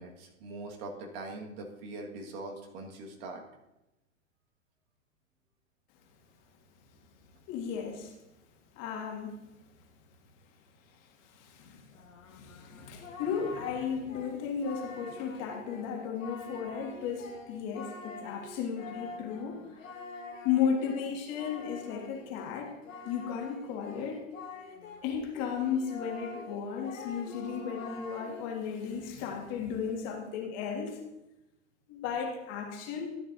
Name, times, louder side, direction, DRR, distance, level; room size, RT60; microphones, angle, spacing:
voice 1, 0.0-3.4, right 2 dB, 50° right, 1 dB, 1.7 m, -42 dB
voice 2, 7.5-8.1 8.7-9.5 10.9-12.0 12.3-19.6 20.4-22.7 23.0-24.2 25.0-31.0 31.9-33.1, left 7 dB, 40° left, 1 dB, 1.9 m, -34 dB
Singing, 11.9-25.1 25.3-28.6, left 3 dB, 85° left, 1.5 m, -46 dB
13.5 x 9.0 x 2.6 m, 0.97 s
hypercardioid pair, 110°, 39 cm